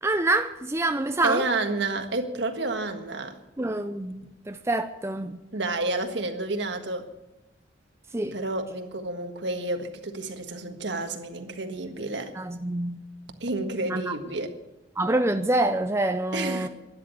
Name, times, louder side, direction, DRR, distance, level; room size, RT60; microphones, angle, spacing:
voice 1, 0.0-1.4 3.6-5.4 8.1-8.4 12.3-13.0 13.9-14.1 15.0-16.7, right 2 dB, 15° right, 0.5 m, -26 dB
voice 2, 1.2-3.4 5.5-7.0 8.3-12.3 13.4-14.5 16.3-16.7, right 2 dB, 70° right, 1.6 m, -30 dB
12.5 x 11.0 x 9.4 m
head